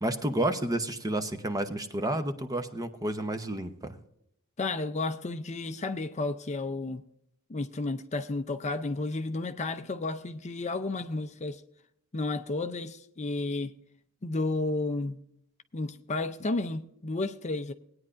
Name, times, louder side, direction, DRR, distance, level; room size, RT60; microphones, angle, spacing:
voice 1, 0.0-4.0, right 1 dB, 15° right, 0.8 m, -30 dB
voice 2, 4.6-7.0 7.5-11.6 12.1-13.7 14.2-15.2 15.7-17.7, left 2 dB, 30° left, 0.6 m, -32 dB
19.5 x 9.7 x 2.6 m
head